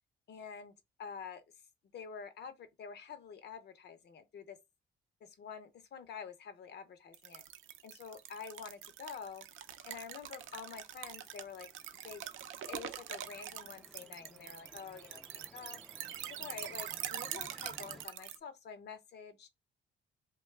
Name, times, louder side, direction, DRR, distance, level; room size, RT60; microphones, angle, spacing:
voice 1, 0.3-0.7 1.0-1.4 1.9-4.6 5.2-7.4 7.8-9.5 9.9-11.7 12.0-12.2 12.7-15.8 16.2-19.5, left 6 dB, 55° left, 0.7 m, -48 dB
sound 1, 7.1-18.4, right 11 dB, 80° right, 0.5 m, -44 dB
sound 2, 7.5-18.1, equal, ahead, 0.3 m, -62 dB
2.8 x 2.2 x 3.2 m
cardioid pair, 90°, 20 cm